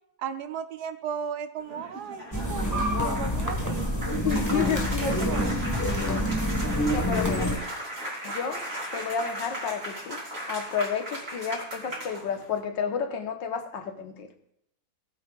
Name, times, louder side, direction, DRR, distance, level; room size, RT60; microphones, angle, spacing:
voice 1, 0.2-3.9 5.0-5.8, right 7 dB, 65° right, 9 dB, 1.2 m, -35 dB
sound 1, 1.6-12.6, right 1 dB, 40° right, 4.0 m, -37 dB
sound 2, 2.3-7.6, equal, 10° left, 1.2 m, -27 dB
voice 2, 4.2-5.2 6.9-7.6 8.2-8.6 8.9-10.2 10.5-14.3, left 7 dB, 70° left, 5 dB, 1.8 m, -31 dB
19.0 x 8.8 x 2.4 m, 0.80 s
omnidirectional pair, 2.2 m